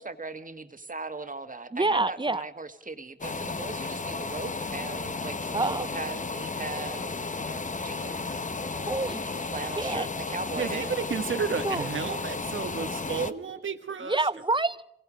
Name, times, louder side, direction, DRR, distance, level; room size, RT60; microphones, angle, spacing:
voice 1, 0.0-8.4 9.5-10.9 12.8-12.9, right 3 dB, 45° right, 8 dB, 1.6 m, -39 dB
voice 2, 1.7-2.4 5.5-5.9 8.7-10.1 11.6-11.9 14.0-14.9, right 2 dB, 25° right, 16 dB, 0.7 m, -28 dB
sound 1, 3.2-13.3, left 3 dB, 40° left, 0.9 m, -33 dB
voice 3, 10.6-14.2, right 5 dB, 85° right, 8 dB, 1.4 m, -32 dB
26.0 x 20.0 x 5.1 m, 0.78 s
cardioid pair, 40°, 20 cm